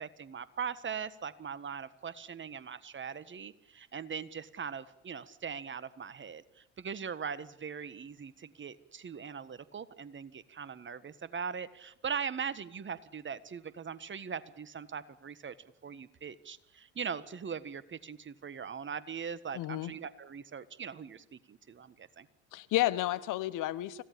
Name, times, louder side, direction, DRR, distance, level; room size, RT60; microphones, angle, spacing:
voice 1, 0.0-15.5 15.8-22.3, right 6 dB, 30° right, 1.6 m, -40 dB
voice 2, 19.5-19.9 22.5-24.0, left 15 dB, 55° left, 1.3 m, -31 dB
25.5 x 16.5 x 8.7 m
hypercardioid pair, 65°, 36 cm